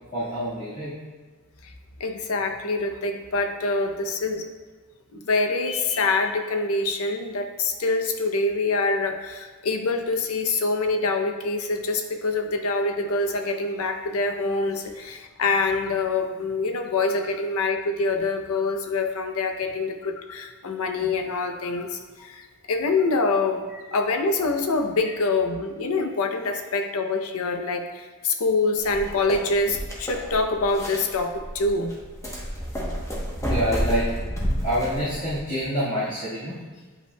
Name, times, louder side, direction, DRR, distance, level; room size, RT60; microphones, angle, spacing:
voice 1, 0.1-0.9 23.7-23.8 33.4-34.1 34.6-36.6, equal, 35° left, -11 dB, 1.5 m, -27 dB
voice 2, 2.0-4.5 5.1-23.6 23.9-32.0, left 3 dB, 70° left, 6 dB, 0.6 m, -25 dB
sound 1, 28.8-35.4, equal, 15° left, 0.9 m, -30 dB
8.4 x 5.3 x 2.2 m, 1.4 s
head